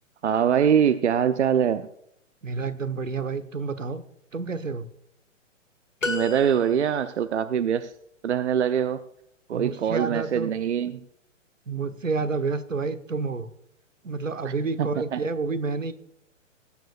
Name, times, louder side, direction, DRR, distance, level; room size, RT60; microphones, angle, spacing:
voice 1, 0.2-1.9 6.1-7.9 8.2-9.0 9.5-11.0 14.4-14.5 14.8-15.2, right 8 dB, 65° right, 12 dB, 0.7 m, -23 dB
voice 2, 2.4-4.0 4.3-4.9 9.5-10.5 11.7-13.5 14.0-15.9, right 4 dB, 80° right, 13 dB, 1.2 m, -29 dB
sound 1, 6.0-7.1, left 3 dB, 80° left, 2.1 m, -32 dB
20.0 x 9.1 x 2.4 m, 0.77 s
figure-of-eight pair, 120°, 38 cm